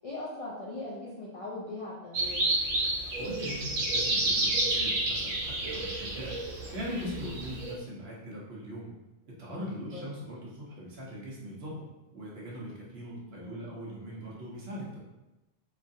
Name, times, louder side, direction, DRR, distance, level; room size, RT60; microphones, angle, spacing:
voice 1, 0.0-2.4 9.9-10.1 13.3-13.6, left 2 dB, 65° left, -6 dB, 0.3 m, -40 dB
sound 1, 2.1-7.7, right 2 dB, 90° right, 1.0 m, -30 dB
voice 2, 3.2-6.4 6.7-8.9 9.3-11.9 12.1-15.0, equal, 60° right, -5 dB, 1.0 m, -40 dB
3.0 x 2.4 x 2.5 m, 1.0 s
omnidirectional pair, 1.3 m